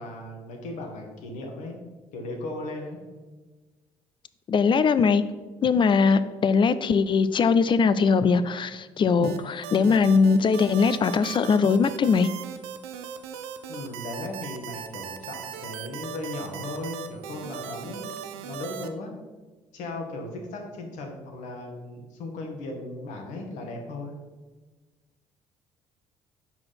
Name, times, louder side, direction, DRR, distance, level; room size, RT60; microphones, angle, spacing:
voice 1, 0.0-1.8 2.1-3.0 13.7-18.1 18.4-19.1 19.7-24.1, left 2 dB, 70° left, 2 dB, 1.3 m, -36 dB
voice 2, 4.5-5.2 5.6-12.3, left 5 dB, 40° left, 14 dB, 0.4 m, -21 dB
sound 1, 9.2-18.9, right 8 dB, 85° right, 0.4 m, -38 dB
4.8 x 4.4 x 5.8 m, 1.3 s
hypercardioid pair, 60°, 13 cm